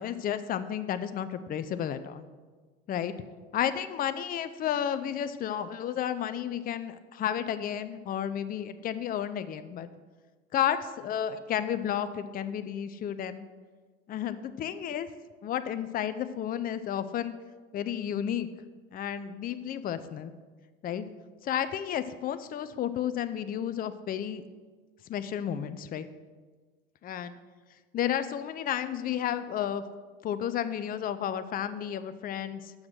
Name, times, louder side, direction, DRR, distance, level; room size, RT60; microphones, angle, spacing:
voice 1, 0.0-2.2 2.9-3.1 3.5-9.9 10.5-13.5 14.1-15.1 15.4-17.3 17.7-18.5 18.9-20.3 20.8-21.0 21.4-24.4 25.1-26.1 27.0-27.4 27.9-29.8 30.2-32.7, left 9 dB, 30° left, 12 dB, 0.5 m, -32 dB
7.2 x 6.4 x 6.2 m, 1.4 s
hypercardioid pair, 80°, 31 cm